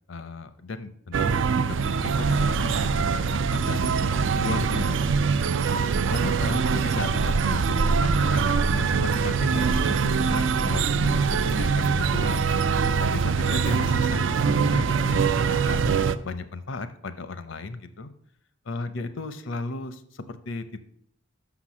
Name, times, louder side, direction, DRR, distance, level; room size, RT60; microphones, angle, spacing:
voice 1, 0.1-1.4 1.8-4.0 4.4-5.3 6.1-7.1 7.4-12.4 13.1-15.9 16.2-18.1 18.7-20.8, left 3 dB, 70° left, 12 dB, 0.7 m, -35 dB
sound 1, 1.1-16.2, right 5 dB, 65° right, 0.4 m, -23 dB
6.0 x 5.9 x 6.1 m, 0.67 s
head